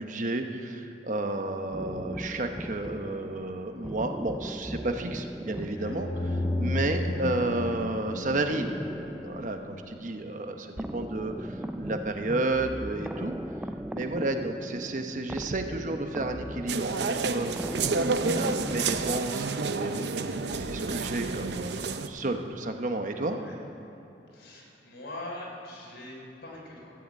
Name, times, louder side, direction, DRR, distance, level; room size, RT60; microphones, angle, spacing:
voice 1, 0.0-8.7 9.2-13.4 13.9-17.5 18.3-23.4, right 2 dB, 45° right, 6 dB, 0.9 m, -32 dB
sound 1, 1.7-19.8, equal, 5° right, 0.3 m, -39 dB
sound 2, 5.7-10.3, left 2 dB, 35° left, 0.7 m, -33 dB
sound 3, 16.7-22.1, right 4 dB, 70° right, 0.6 m, -30 dB
voice 2, 23.3-23.6 24.3-26.9, left 1 dB, 75° left, -2 dB, 3.4 m, -42 dB
14.0 x 7.9 x 8.2 m, 3.0 s
head